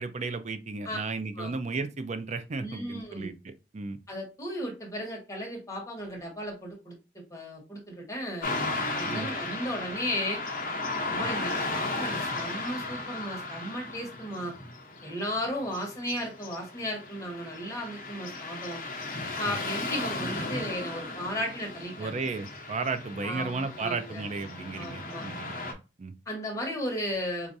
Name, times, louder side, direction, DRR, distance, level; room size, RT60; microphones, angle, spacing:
voice 1, 0.0-4.0 9.0-9.3 11.2-11.3 19.5-19.6 22.0-26.1, right 4 dB, 40° right, 0.5 m, -34 dB
voice 2, 2.6-3.3 4.1-7.0 7.3-10.4 11.1-14.5 15.0-18.8 19.4-22.2 23.2-24.2 24.8-25.3 26.3-27.5, equal, 20° left, 1.2 m, -35 dB
Car passing by / Traffic noise roadway noise, 8.4-25.7, left 2 dB, 50° left, 0.8 m, -35 dB
4.6 x 2.5 x 2.6 m
head